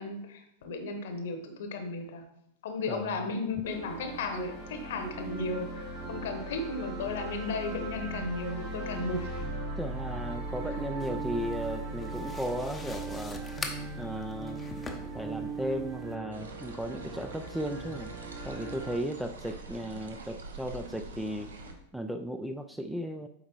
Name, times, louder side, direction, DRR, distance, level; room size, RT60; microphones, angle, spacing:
voice 1, 0.0-2.3 2.6-9.3 10.6-10.8, left 3 dB, 55° left, 6 dB, 1.0 m, -35 dB
voice 2, 2.9-3.3 9.8-13.4 14.0-14.6 15.1-18.1 18.4-21.5 21.9-23.3, equal, ahead, 7 dB, 0.4 m, -35 dB
sound 1, 3.6-18.9, right 2 dB, 35° right, 2.3 m, -38 dB
sound 2, 11.0-16.2, left 3 dB, 15° left, 0.7 m, -44 dB
sound 3, 16.3-21.7, right 2 dB, 70° right, 0.8 m, -45 dB
8.0 x 4.7 x 3.0 m, 0.78 s
figure-of-eight pair, 90°, 0 cm